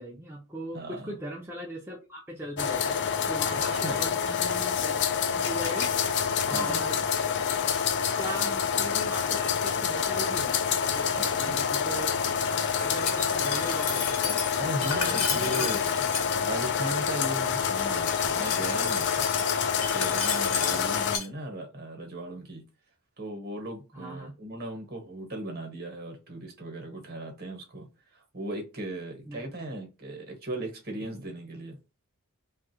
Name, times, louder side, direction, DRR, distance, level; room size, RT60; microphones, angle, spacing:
voice 1, 0.0-3.0 3.3-5.0 5.3-7.0 8.2-10.5 10.9-12.1 12.4-14.4 14.8-15.7 20.7-20.9 23.9-24.3 29.3-29.5, right 1 dB, 10° right, 0.5 m, -39 dB
voice 2, 0.7-1.1 3.7-4.0 6.5-6.8 11.2-11.6 14.6-15.9 16.4-19.2 19.9-22.6 23.2-27.9 28.1-31.8, right 1 dB, 45° right, 1.1 m, -37 dB
sound 1, 2.6-21.2, left 7 dB, 50° left, 0.4 m, -27 dB
Glass, 12.9-16.3 17.9-21.3, left 6 dB, 80° left, 0.9 m, -33 dB
3.0 x 2.4 x 2.9 m
head